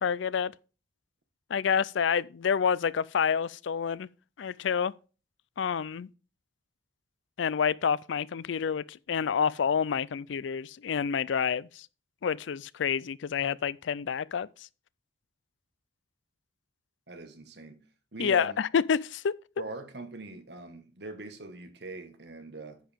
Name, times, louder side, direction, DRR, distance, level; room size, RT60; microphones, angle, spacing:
voice 1, 0.0-0.5 1.5-4.1 4.4-4.9 5.6-6.1 7.4-11.9 12.2-14.7 18.2-19.3, left 7 dB, 80° left, 0.4 m, -28 dB
voice 2, 17.1-17.8 18.1-18.6 19.6-22.8, right 2 dB, 65° right, 1.5 m, -42 dB
10.0 x 7.3 x 3.5 m
head